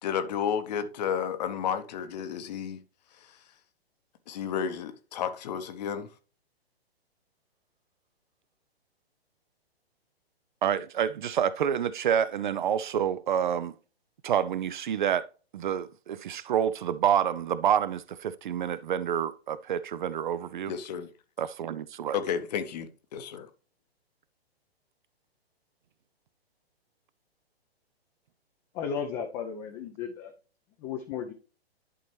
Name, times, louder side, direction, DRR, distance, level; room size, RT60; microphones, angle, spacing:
voice 1, 0.0-2.8 3.2-3.3 4.3-6.1 20.7-21.1 22.1-23.5, left 8 dB, 40° left, 0.9 m, -32 dB
voice 2, 10.6-13.7 14.2-15.3 15.5-20.7 21.4-22.2, right 9 dB, 50° right, 0.5 m, -28 dB
voice 3, 28.7-30.3 30.8-31.3, left 7 dB, 15° left, 0.5 m, -34 dB
11.0 x 4.1 x 3.2 m
figure-of-eight pair, 120°, 31 cm